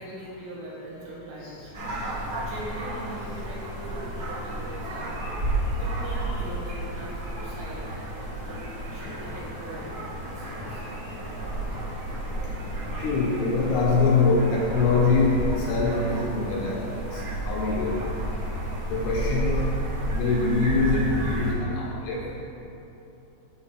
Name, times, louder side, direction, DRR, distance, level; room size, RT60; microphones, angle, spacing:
voice 1, 0.0-5.4 5.7-10.8, right 1 dB, 75° right, -6 dB, 3.6 m, -42 dB
sound 1, 1.7-21.5, right 1 dB, 60° right, 1.6 m, -31 dB
sound 2, 9.0-16.4, left 1 dB, 50° left, 1.3 m, -44 dB
voice 2, 13.0-18.1 18.9-19.7 20.1-22.4, left 3 dB, 80° left, -3 dB, 2.4 m, -24 dB
11.5 x 4.4 x 3.3 m, 2.9 s
omnidirectional pair, 5.0 m